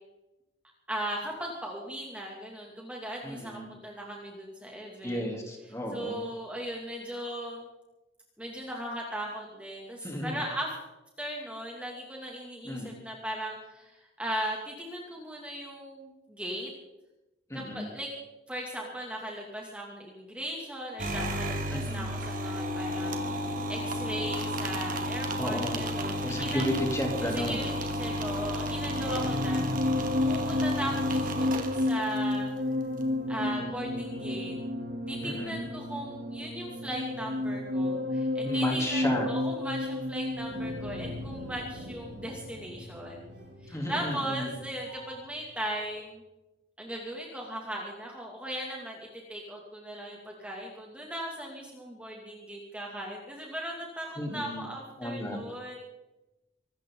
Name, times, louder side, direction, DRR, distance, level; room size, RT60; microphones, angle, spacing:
voice 1, 0.9-5.2 5.9-7.7 8.4-10.7 11.2-16.7 17.5-18.1 18.5-26.6 27.2-29.6 30.2-32.5 33.3-34.6 35.1-46.2 46.8-55.8, right 1 dB, 5° right, -2 dB, 2.4 m, -38 dB
voice 2, 3.2-3.7 5.0-6.3 10.0-10.4 12.6-12.9 17.5-17.9 21.7-22.1 25.4-25.9 26.2-27.6 35.2-35.6 38.4-39.3 43.7-44.6 54.2-54.6 55.0-55.4, left 1 dB, 15° left, 1 dB, 3.2 m, -33 dB
sound 1, 21.0-32.4, equal, 45° right, 2.0 m, -32 dB
sound 2, 28.7-45.3 45.6-45.9, left 1 dB, 65° right, 3.0 m, -32 dB
24.5 x 13.5 x 3.9 m, 1.0 s
head